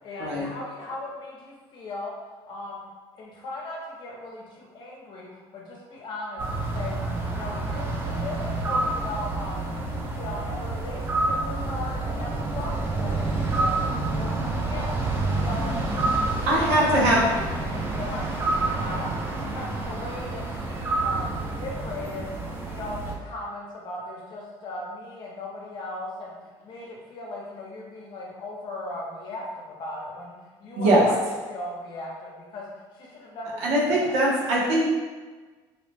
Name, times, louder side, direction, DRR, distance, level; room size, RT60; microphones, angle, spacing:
voice 1, 0.0-2.8 3.2-7.0 7.3-9.7 10.1-14.9 15.3-19.1 19.4-26.3 26.6-30.3 30.6-31.2 31.5-32.7 32.9-34.2, left 2 dB, 45° left, -3 dB, 0.7 m, -38 dB
sound 1, 6.4-23.1, right 2 dB, 20° right, 0.4 m, -28 dB
voice 2, 16.4-17.2 30.8-31.1 33.6-34.9, right 1 dB, 85° right, -4 dB, 0.8 m, -21 dB
2.7 x 2.0 x 3.2 m, 1.3 s
cardioid pair, 145°, 11 cm